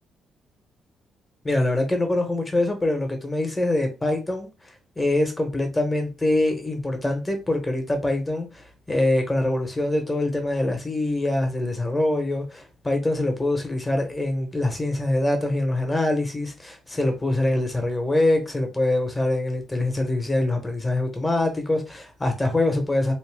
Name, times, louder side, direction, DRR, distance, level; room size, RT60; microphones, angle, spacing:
voice 1, 1.4-4.5 5.0-23.1, left 2 dB, 15° left, 0.9 m, -24 dB
2.6 x 2.1 x 3.3 m
cardioid pair, 90°, 0 cm